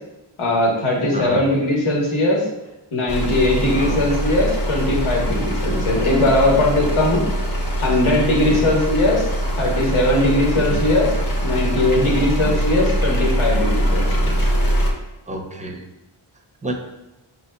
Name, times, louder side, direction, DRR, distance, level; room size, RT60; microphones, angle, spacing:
voice 1, 0.4-2.4 2.9-7.2 7.8-9.3 9.6-11.1 11.4-14.0, left 1 dB, 80° left, -3 dB, 1.3 m, -19 dB
sound 1, 3.1-14.9, equal, 45° left, 1.0 m, -22 dB
voice 2, 15.3-15.8 16.6-16.7, right 1 dB, 15° right, 2 dB, 0.6 m, -29 dB
7.3 x 2.8 x 2.2 m, 0.99 s
wide cardioid pair, 75°, 49 cm